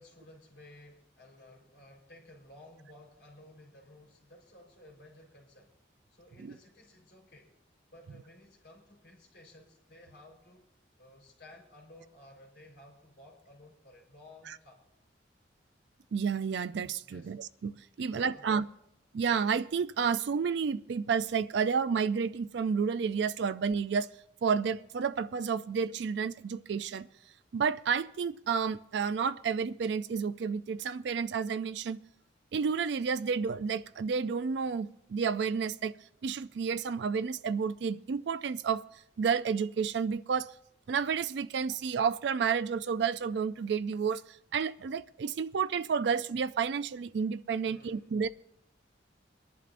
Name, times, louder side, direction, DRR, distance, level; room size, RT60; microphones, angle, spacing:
voice 1, 0.0-5.7 6.1-7.5 7.9-10.7 11.0-14.8 17.0-17.4 18.0-18.7 47.6-48.1, left 1 dB, 65° left, 3.9 m, -55 dB
voice 2, 16.1-18.7 19.1-24.1 24.4-27.1 27.5-32.0 32.5-35.9 36.2-38.8 39.2-40.5 40.9-44.2 44.5-48.3, right 6 dB, 65° right, 0.3 m, -30 dB
24.5 x 11.0 x 2.5 m
head